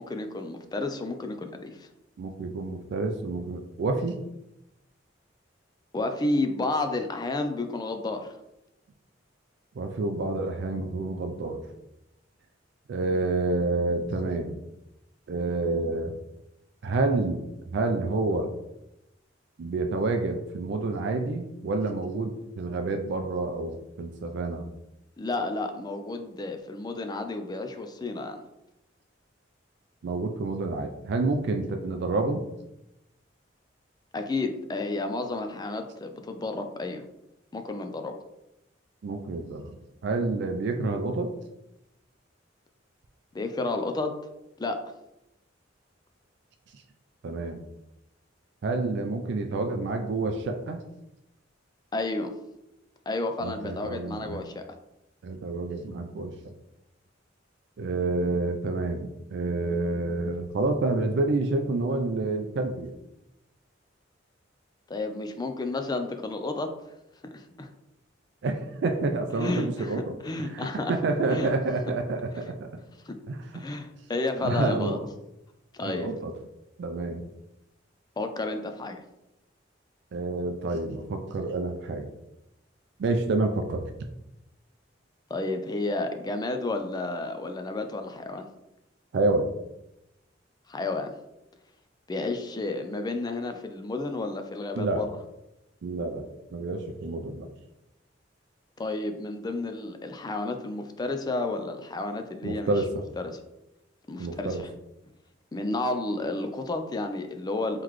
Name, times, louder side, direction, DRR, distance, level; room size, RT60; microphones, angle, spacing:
voice 1, 0.0-1.9 5.9-8.3 25.2-28.4 34.1-37.0 37.5-38.2 43.3-44.2 44.6-44.8 51.9-52.3 53.1-54.6 64.9-66.7 67.3-67.7 69.4-70.9 71.3-71.5 73.0-73.2 73.5-75.0 75.8-76.1 78.2-79.0 85.3-88.5 90.7-91.1 92.1-95.1 98.8-102.7 103.2-103.4 104.1-104.7 105.5-107.8, left 2 dB, 20° left, 6 dB, 0.4 m, -31 dB
voice 2, 2.2-4.2 9.8-11.6 12.9-14.6 15.3-16.1 16.8-17.4 17.7-18.5 19.6-24.7 30.0-32.4 39.0-41.3 46.7-46.8 47.2-47.6 48.6-50.8 53.4-54.4 55.2-56.5 57.8-62.9 68.4-72.7 73.3-73.7 74.4-75.0 75.8-76.3 76.8-77.2 80.1-82.1 83.0-83.8 89.1-89.5 94.8-95.0 95.8-97.5 102.4-103.1 104.2-104.6, right 3 dB, 65° right, 5 dB, 0.4 m, -28 dB
3.9 x 3.1 x 3.0 m, 0.89 s
head